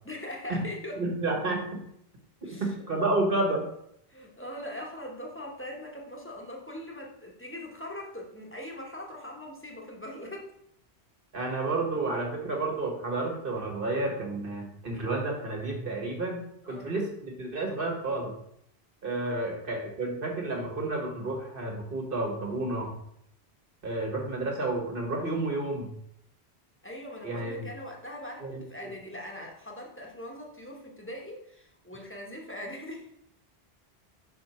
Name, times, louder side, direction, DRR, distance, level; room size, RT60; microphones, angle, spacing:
voice 1, 0.0-1.0 2.4-2.7 4.1-10.5 16.6-16.9 19.2-19.4 26.8-33.1, left 1 dB, 10° left, -1 dB, 1.1 m, -41 dB
voice 2, 1.0-1.6 2.6-3.6 11.3-18.3 19.0-23.0 23.8-25.9 27.2-27.6 28.4-28.5, right 2 dB, 60° right, 1 dB, 1.6 m, -30 dB
6.0 x 4.5 x 4.3 m, 0.72 s
omnidirectional pair, 1.1 m